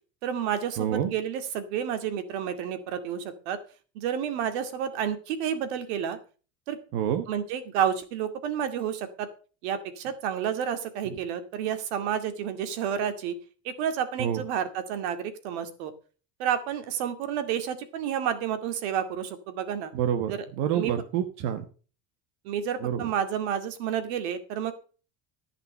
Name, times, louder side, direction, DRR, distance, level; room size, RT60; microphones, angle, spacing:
voice 1, 0.2-3.6 3.9-6.2 6.7-6.8 7.3-9.3 9.6-13.3 13.6-15.9 16.4-19.9 20.3-20.4 20.7-20.9 22.4-24.7, right 8 dB, 90° right, 9 dB, 2.3 m, -30 dB
voice 2, 0.8-1.1 6.9-7.2 14.2-14.4 19.9-21.6 22.8-23.1, right 9 dB, 70° right, 7 dB, 1.6 m, -28 dB
14.5 x 5.9 x 6.6 m, 0.37 s
cardioid pair, 145°, 32 cm